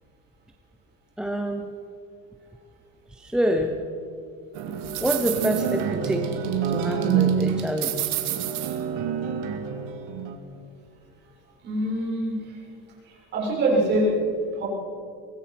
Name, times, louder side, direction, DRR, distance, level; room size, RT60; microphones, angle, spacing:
voice 1, 1.2-1.7 3.1-3.8 5.0-6.3 6.7-8.1, right 1 dB, 5° right, 4 dB, 0.7 m, -26 dB
sound 1, 4.5-10.4, right 8 dB, 85° right, 2.5 m, -27 dB
voice 2, 11.6-12.6 13.0-14.1 14.5-14.6, right 1 dB, 35° right, -4 dB, 7.3 m, -25 dB
24.0 x 18.0 x 6.0 m, 2.3 s
cardioid pair, 175°, 30 cm